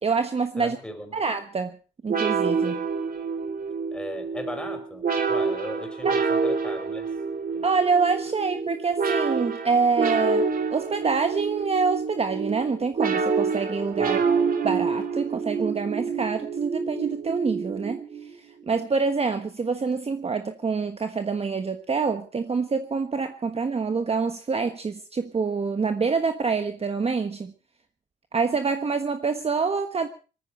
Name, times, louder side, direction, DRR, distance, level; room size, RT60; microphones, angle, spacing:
voice 1, 0.0-0.8 1.1-1.7 2.0-2.8 6.0-6.2 7.6-14.2 14.6-18.0 18.7-27.5 28.3-30.1, right 4 dB, 30° right, 7 dB, 1.3 m, -26 dB
voice 2, 0.6-1.2 3.9-7.1 7.5-7.7 14.0-14.4, left 1 dB, 5° left, 5 dB, 5.5 m, -37 dB
sound 1, 2.1-18.3, right 5 dB, 45° right, 2.8 m, -27 dB
20.5 x 14.0 x 4.4 m, 0.37 s
cardioid pair, 90°, 20 cm